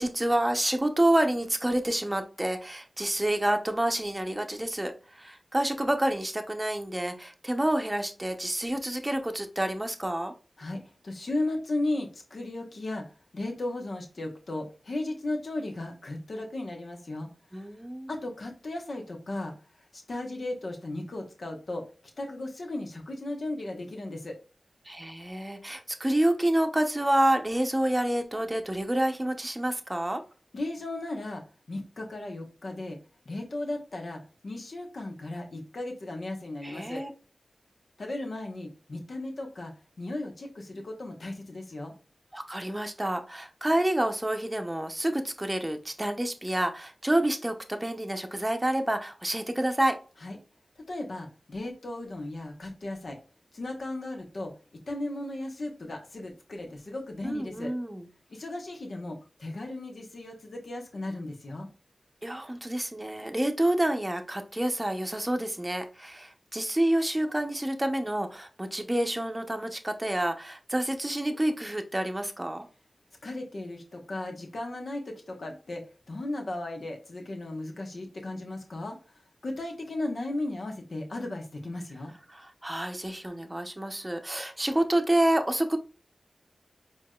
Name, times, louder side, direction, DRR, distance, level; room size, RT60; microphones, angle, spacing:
voice 1, 0.0-10.3 17.5-18.1 24.9-30.2 36.6-37.1 42.3-50.0 57.2-58.1 62.2-72.7 82.3-85.8, right 1 dB, 20° right, 5 dB, 0.7 m, -28 dB
voice 2, 10.6-13.0 13.3-17.3 18.1-19.5 19.9-21.8 22.2-24.4 30.5-31.4 31.7-33.0 33.3-37.0 38.0-39.7 40.0-41.9 50.2-50.4 50.9-53.2 53.5-57.7 58.3-61.7 73.2-79.0 79.4-82.1, left 2 dB, 70° left, 2 dB, 1.1 m, -35 dB
4.6 x 3.0 x 2.3 m, 0.34 s
cardioid pair, 45°, 0 cm